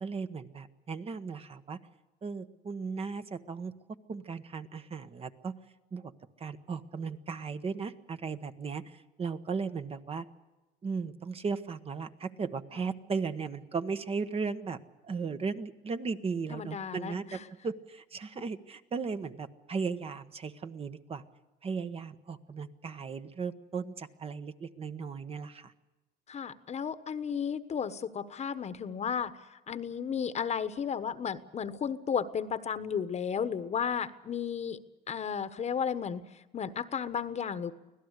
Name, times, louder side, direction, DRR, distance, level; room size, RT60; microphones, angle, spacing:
voice 1, 0.0-1.8 2.2-3.7 4.1-5.5 5.9-6.1 6.4-10.2 10.8-14.8 15.0-21.2 21.6-25.7, right 5 dB, 35° right, 10 dB, 1.2 m, -36 dB
voice 2, 16.5-17.4 18.4-18.5 26.3-34.8 35.1-37.7, left 7 dB, 40° left, 13 dB, 1.2 m, -34 dB
25.0 x 17.0 x 8.2 m, 1.1 s
cardioid pair, 110°, 17 cm